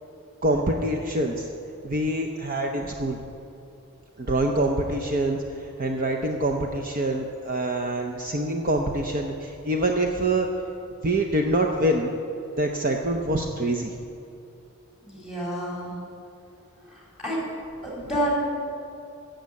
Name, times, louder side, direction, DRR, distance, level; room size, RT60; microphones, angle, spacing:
voice 1, 0.4-1.5 1.8-3.2 4.2-10.5 11.0-12.1 12.6-13.9, right 1 dB, 40° right, 3 dB, 0.7 m, -25 dB
voice 2, 15.0-16.0 16.9-17.5 17.8-18.4, equal, 5° right, -4 dB, 4.1 m, -29 dB
15.0 x 7.9 x 8.3 m, 2.7 s
head